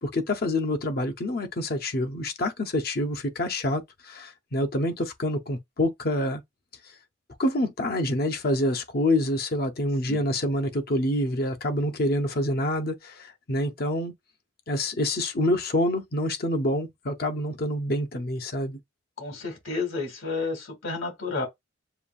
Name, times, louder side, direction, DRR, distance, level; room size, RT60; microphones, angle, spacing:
voice 1, 0.0-6.4 7.4-14.1 14.7-18.8, left 1 dB, 50° left, 0.7 m, -27 dB
voice 2, 19.2-21.5, left 3 dB, 75° left, 2.2 m, -31 dB
7.0 x 2.3 x 2.4 m
head